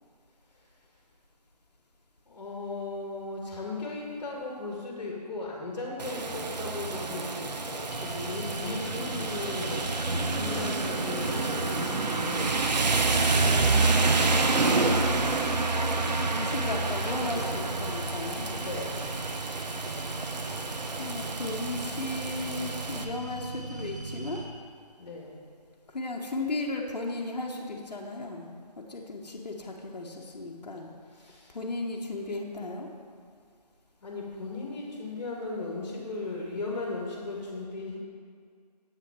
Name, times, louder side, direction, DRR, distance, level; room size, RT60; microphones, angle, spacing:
voice 1, 2.3-13.0 18.5-19.1 25.0-25.4 31.1-31.6 34.0-38.0, left 3 dB, 55° left, -3 dB, 1.6 m, -37 dB
Rain, 6.0-23.0, right 3 dB, 90° right, 0.7 m, -28 dB
sound 1, 7.9-24.5, right 3 dB, 25° right, 0.8 m, -39 dB
voice 2, 8.6-9.3 13.7-14.6 16.0-18.7 21.0-24.4 25.9-28.5 28.8-30.9 31.5-32.9, left 2 dB, 75° left, 0 dB, 1.0 m, -36 dB
7.8 x 5.7 x 4.8 m, 2.1 s
figure-of-eight pair, 160°, 21 cm